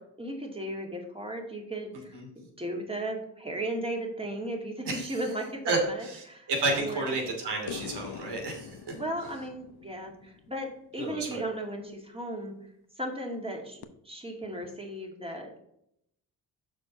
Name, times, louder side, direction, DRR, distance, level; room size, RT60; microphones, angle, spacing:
voice 1, 0.2-7.1 8.9-12.5 13.0-15.7, right 1 dB, 15° right, 1 dB, 2.5 m, -36 dB
voice 2, 4.9-5.2 5.6-8.9 11.0-11.5, right 2 dB, 70° right, 1 dB, 2.8 m, -31 dB
sound 1, 7.7-11.0 13.8-13.9, left 8 dB, 65° left, 0.8 m, -44 dB
6.4 x 4.8 x 5.9 m, 0.75 s
supercardioid pair, 60°, 41 cm